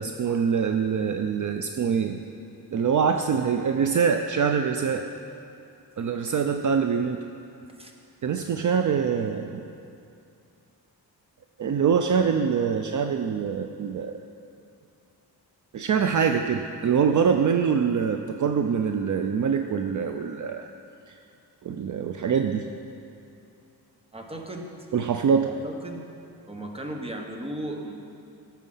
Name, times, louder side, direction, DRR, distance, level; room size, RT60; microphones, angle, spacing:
voice 1, 0.0-2.2 2.7-5.0 6.0-7.2 8.2-9.6 11.6-14.2 15.7-20.7 21.1-21.2 21.6-22.6 24.9-25.6, right 6 dB, 50° right, 6 dB, 0.5 m, -24 dB
voice 2, 24.1-24.7 25.5-26.0 26.5-27.9, right 1 dB, 15° right, 2 dB, 1.2 m, -36 dB
17.5 x 7.3 x 5.6 m, 2.6 s
wide cardioid pair, 150°, 39 cm